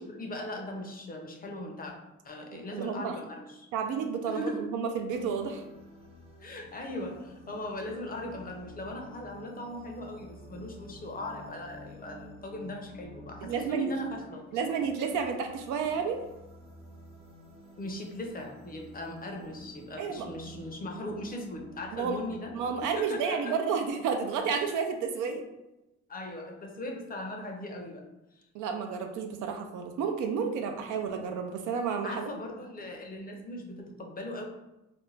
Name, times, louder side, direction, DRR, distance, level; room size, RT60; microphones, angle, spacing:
voice 1, 0.0-1.9 2.2-3.7 4.3-4.7 6.4-14.6 17.8-22.5 22.8-23.6 26.1-28.0 28.4-28.5 32.0-34.5, left 1 dB, 30° left, 2 dB, 0.5 m, -39 dB
voice 2, 2.7-3.1 3.7-5.6 13.4-13.9 14.5-16.2 20.0-20.3 21.9-22.2 22.5-25.4 28.5-32.3, right 6 dB, 85° right, 5 dB, 0.5 m, -31 dB
sound 1, 5.1-22.9, equal, 20° right, 0.6 m, -51 dB
2.5 x 2.1 x 3.1 m, 0.95 s
cardioid pair, 90°, 30 cm